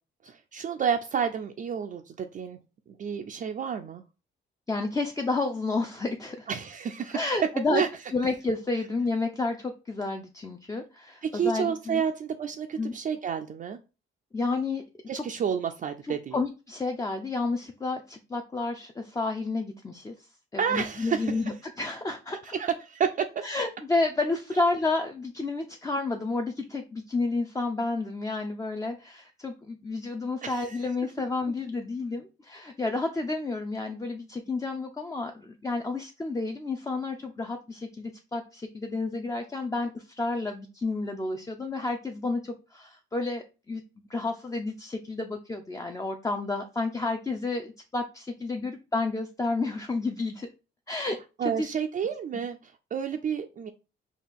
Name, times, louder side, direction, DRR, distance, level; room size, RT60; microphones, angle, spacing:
voice 1, 0.2-2.6 2.9-4.0 6.5-7.4 7.7-7.9 11.2-13.8 15.1-16.4 20.6-21.5 22.4-23.3 30.4-30.8 51.4-53.7, right 7 dB, 40° right, 5 dB, 0.4 m, -30 dB
voice 2, 4.7-6.5 7.1-7.8 8.1-12.0 12.8-12.9 14.3-14.8 15.1-15.2 16.3-20.2 20.5-22.4 23.4-43.8 44.1-50.5 50.9-51.2 51.4-51.7, left 3 dB, 15° left, 4 dB, 0.4 m, -30 dB
4.1 x 2.3 x 3.5 m, 0.31 s
cardioid pair, 90°, 20 cm